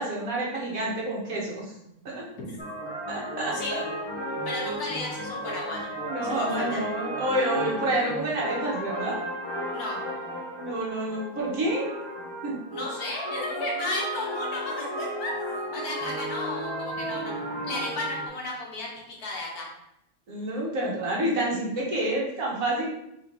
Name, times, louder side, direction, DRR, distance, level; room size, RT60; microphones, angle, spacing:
voice 1, 0.0-1.7 2.0-2.2 3.1-3.8 6.0-9.2 10.5-11.9 12.4-12.5 20.3-22.9, right 1 dB, 65° right, -4 dB, 1.5 m, -28 dB
sound 1, 2.6-18.3, equal, 30° left, 0.5 m, -34 dB
voice 2, 4.4-5.9 6.2-6.8 9.7-10.0 12.7-17.4 17.6-18.9 19.2-19.7, left 2 dB, 75° left, -3 dB, 1.6 m, -34 dB
3.8 x 3.1 x 3.8 m, 0.81 s
omnidirectional pair, 1.6 m